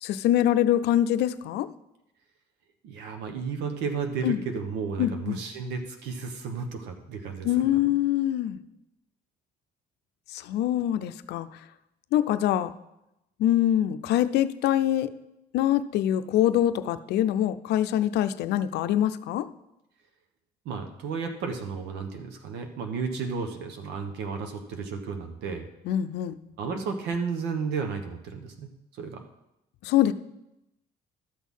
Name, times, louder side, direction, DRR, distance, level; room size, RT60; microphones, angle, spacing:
voice 1, 0.0-1.7 4.2-4.4 5.0-5.4 7.4-8.6 10.3-11.5 12.1-12.7 13.4-15.1 15.5-19.5 25.9-26.4 29.8-30.1, left 12 dB, 80° left, 13 dB, 0.6 m, -24 dB
voice 2, 2.8-7.5 20.6-25.7 26.6-28.7 29.0-29.2, right 5 dB, 85° right, 5 dB, 1.3 m, -33 dB
12.5 x 6.3 x 5.5 m, 0.89 s
cardioid pair, 110°, 17 cm